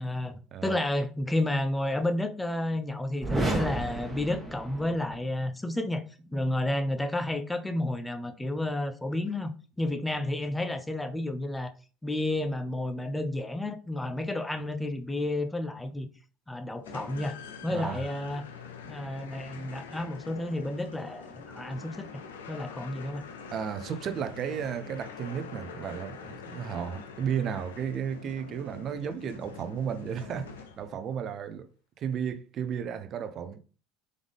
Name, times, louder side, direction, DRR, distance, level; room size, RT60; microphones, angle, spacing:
voice 1, 0.0-6.0 6.3-9.5 9.8-11.7 12.0-16.1 16.5-17.4 17.6-18.4 18.8-22.1 22.5-23.2, left 1 dB, 10° left, 0.7 m, -31 dB
sound 1, 3.2-5.2, right 2 dB, 15° right, 1.3 m, -32 dB
sound 2, 16.8-31.1, left 6 dB, 90° left, 0.5 m, -45 dB
voice 2, 17.7-18.0 23.5-31.7 32.0-33.6, right 8 dB, 50° right, 0.6 m, -34 dB
3.8 x 3.6 x 3.4 m
hypercardioid pair, 80°, 0 cm